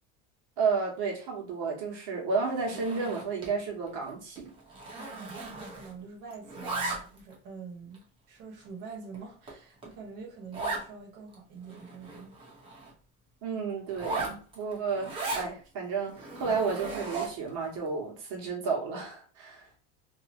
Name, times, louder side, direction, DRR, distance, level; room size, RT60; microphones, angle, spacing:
voice 1, 0.6-4.5 13.4-19.7, right 5 dB, 85° right, 1.5 m, -32 dB
Zipper (clothing), 2.5-3.6 3.9-4.1 4.4-6.0 6.3-7.3 7.9-8.0 8.6-8.7 9.1-9.2 9.5-9.6 9.8-9.9 10.5-10.9 11.3-11.4 11.6-12.9 13.9-15.5 16.1-17.5, right 3 dB, 15° right, 0.7 m, -37 dB
voice 2, 4.9-12.4, right 4 dB, 65° right, 1.3 m, -45 dB
2.8 x 2.7 x 2.6 m
cardioid pair, 165°, 34 cm